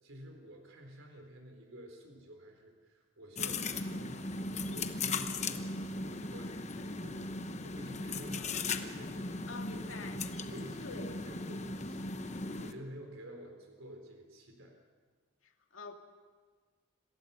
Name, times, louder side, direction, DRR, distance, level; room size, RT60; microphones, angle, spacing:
voice 1, 0.0-4.2 4.5-9.5 10.1-12.3 12.6-14.7, equal, 85° right, 3 dB, 3.8 m, -51 dB
sound 1, 3.4-12.7, left 3 dB, 35° left, 1.0 m, -38 dB
voice 2, 8.4-8.7 9.5-10.3 10.8-11.2 15.4-15.9, left 3 dB, 75° left, 4 dB, 2.2 m, -47 dB
27.0 x 16.5 x 6.8 m, 1.5 s
head